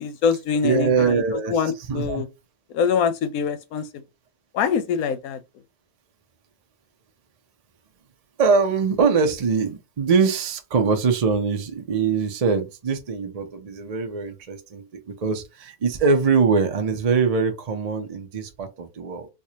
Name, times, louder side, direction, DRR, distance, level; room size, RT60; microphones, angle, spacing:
voice 1, 0.0-1.2 1.5-2.3 2.7-3.9 4.5-5.4, left 6 dB, 80° left, 1.1 m, -24 dB
voice 2, 0.6-1.6 1.9-2.2 8.4-14.8 15.2-19.3, right 5 dB, 45° right, 0.5 m, -22 dB
4.6 x 2.4 x 2.8 m
omnidirectional pair, 1.5 m